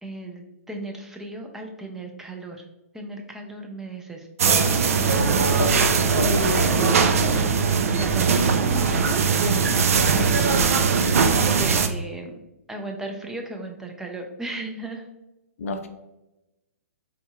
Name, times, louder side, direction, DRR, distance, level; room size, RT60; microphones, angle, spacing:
voice 1, 0.0-2.6 2.9-4.7 4.9-5.2 7.9-12.3 12.7-15.1, right 2 dB, 5° right, 0.5 m, -36 dB
sound 1, 4.4-11.9, right 5 dB, 70° right, 0.4 m, -20 dB
Keyboard (musical), 4.5-6.8, left 3 dB, 50° right, 1.5 m, -44 dB
voice 2, 5.6-7.4 15.6-15.9, left 2 dB, 70° left, 0.5 m, -29 dB
4.0 x 2.7 x 2.3 m
hypercardioid pair, 130°, 8 cm